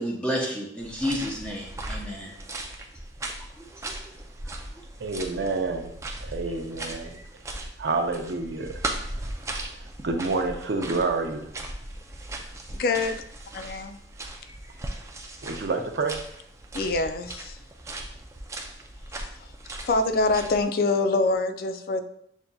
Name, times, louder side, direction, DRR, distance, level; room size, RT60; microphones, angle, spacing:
voice 1, 0.0-2.3 3.4-4.1 4.4-4.8, equal, 5° left, -4 dB, 0.7 m, -32 dB
sound 1, 0.8-20.6, right 2 dB, 15° right, 0.4 m, -38 dB
voice 2, 5.0-5.9 6.2-7.2 7.8-8.8 10.0-11.5 15.4-16.2, right 3 dB, 70° right, 5 dB, 0.5 m, -28 dB
voice 3, 12.7-13.2 13.5-14.0 16.7-17.6 19.4-19.5 19.8-22.0, left 3 dB, 55° left, 8 dB, 0.3 m, -25 dB
7.1 x 2.6 x 2.3 m, 0.72 s
head